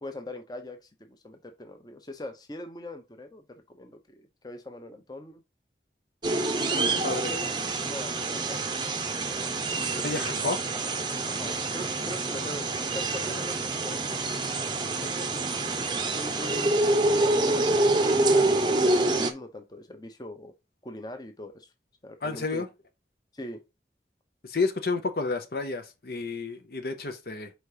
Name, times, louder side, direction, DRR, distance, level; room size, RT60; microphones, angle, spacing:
voice 1, 0.0-5.4 6.7-7.5 7.8-8.6 9.7-10.5 11.3-12.7 12.9-14.4 14.9-15.4 16.1-20.5 20.8-21.7 22.0-22.6 23.3-23.6, left 1 dB, 20° left, 0.8 m, -41 dB
sound 1, 6.2-19.3, right 2 dB, 25° right, 0.7 m, -26 dB
voice 2, 10.0-10.6 22.2-22.7 24.4-27.5, left 3 dB, 55° left, 0.7 m, -30 dB
4.7 x 4.1 x 4.9 m
head